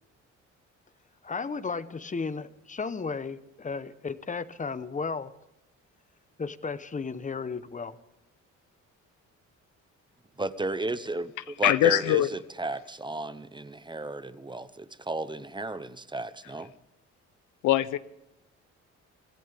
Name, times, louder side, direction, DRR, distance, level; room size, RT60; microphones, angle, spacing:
voice 1, 1.2-5.3 6.4-8.0, left 4 dB, 25° left, 14 dB, 1.0 m, -34 dB
voice 2, 10.4-16.7, right 2 dB, 15° right, 14 dB, 0.8 m, -34 dB
voice 3, 11.6-12.3 17.6-18.0, left 14 dB, 85° left, 16 dB, 0.7 m, -22 dB
25.0 x 16.5 x 3.5 m, 0.89 s
cardioid pair, 90°, 30 cm